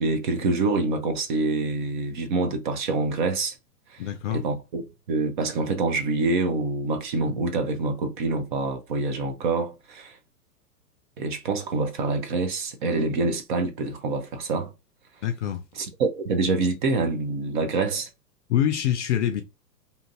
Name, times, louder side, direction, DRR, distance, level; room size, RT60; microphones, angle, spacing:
voice 1, 0.0-3.6 3.9-4.0 4.3-4.8 5.1-10.2 11.2-14.7 15.8-18.1, right 3 dB, 35° right, 0.4 m, -26 dB
voice 2, 4.0-4.4 15.2-15.6 18.5-19.4, left 10 dB, 50° left, 0.5 m, -25 dB
2.7 x 2.5 x 2.6 m
hypercardioid pair, 110°, 49 cm